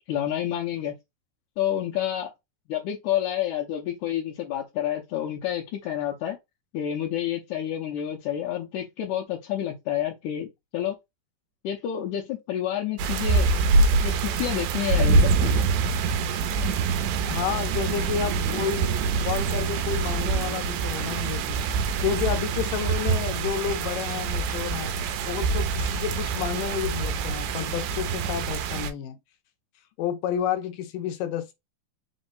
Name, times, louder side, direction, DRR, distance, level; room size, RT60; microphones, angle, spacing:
voice 1, 0.1-1.0 1.6-2.3 2.7-6.4 6.7-11.0 11.6-13.5 14.0-15.6, left 11 dB, 75° left, 2.0 m, -29 dB
sound 1, 13.0-28.9, right 4 dB, 80° right, 2.0 m, -25 dB
voice 2, 17.3-18.9 19.2-21.7 22.0-25.0 25.3-29.2 30.0-31.5, left 9 dB, 90° left, 2.3 m, -30 dB
5.3 x 2.1 x 4.0 m
omnidirectional pair, 3.9 m